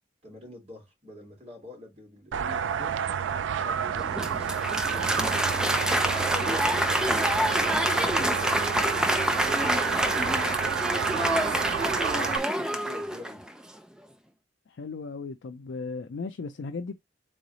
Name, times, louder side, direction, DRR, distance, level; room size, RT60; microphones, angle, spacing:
voice 1, 0.2-3.0 3.6-5.2 6.0-8.9 9.2-11.0 11.9-13.4, left 1 dB, 30° right, 2.3 m, -45 dB
sound 1, 2.3-12.4, right 7 dB, 80° right, 0.3 m, -30 dB
Applause, 3.9-13.5, equal, 5° right, 0.3 m, -27 dB
voice 2, 14.7-17.0, left 4 dB, 75° left, 0.4 m, -36 dB
3.8 x 3.2 x 3.9 m
head